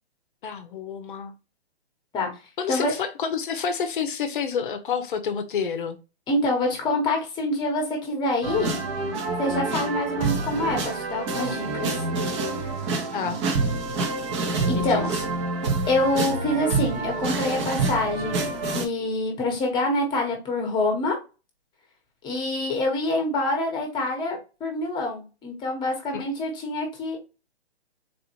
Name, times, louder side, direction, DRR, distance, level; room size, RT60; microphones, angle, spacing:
voice 1, 0.4-1.3 2.6-6.0 13.1-13.4 14.7-15.1 26.1-26.2, left 6 dB, 50° left, 0.7 m, -29 dB
voice 2, 2.1-2.9 6.3-8.7 9.4-12.1 14.6-15.1 15.9-18.5 18.7-21.2 22.2-27.2, left 1 dB, 15° left, 1.0 m, -26 dB
sound 1, 8.4-18.9, right 3 dB, 25° right, 0.7 m, -27 dB
4.0 x 2.4 x 2.9 m
hypercardioid pair, 135°, 33 cm